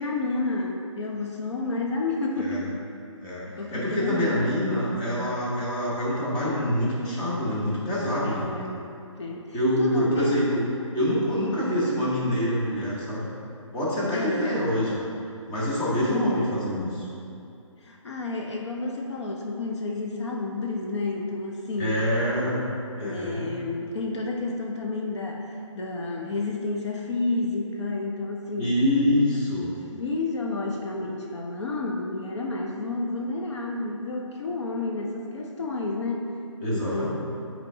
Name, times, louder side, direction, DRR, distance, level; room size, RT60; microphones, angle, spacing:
voice 1, 0.0-2.7 3.5-4.5 8.2-8.8 9.2-10.3 14.1-14.7 16.0-16.6 17.8-22.0 23.0-28.8 29.9-36.4 36.7-37.1, left 3 dB, 60° left, 0 dB, 0.7 m, -30 dB
voice 2, 3.7-8.5 9.5-10.6 10.9-13.2 13.7-15.0 15.5-17.0 21.8-22.7 23.0-23.5 28.6-29.7 36.6-37.1, equal, 15° left, -7 dB, 1.0 m, -26 dB
8.1 x 4.4 x 2.7 m, 2.6 s
hypercardioid pair, 160°, 17 cm